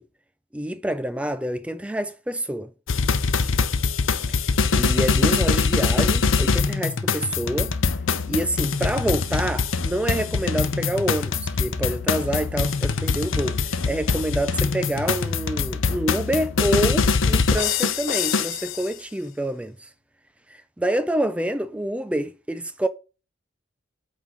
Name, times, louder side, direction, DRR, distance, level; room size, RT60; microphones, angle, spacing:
voice 1, 0.5-2.7 4.3-4.4 4.7-7.7 8.3-19.8 20.8-22.9, right 1 dB, 5° right, 0.3 m, -27 dB
sound 1, 2.9-18.8, left 4 dB, 75° left, 0.8 m, -23 dB
8.6 x 3.7 x 6.0 m
head